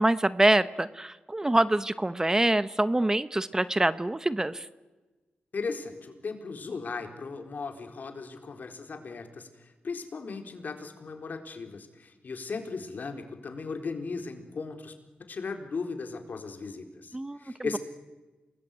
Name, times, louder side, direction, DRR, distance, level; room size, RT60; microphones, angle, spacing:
voice 1, 0.0-4.7 17.1-17.4, right 1 dB, 15° right, 14 dB, 0.9 m, -25 dB
voice 2, 5.5-14.9 15.3-17.8, left 4 dB, 55° left, 5 dB, 4.1 m, -37 dB
28.0 x 21.0 x 9.2 m, 1.2 s
cardioid pair, 85°, 3 cm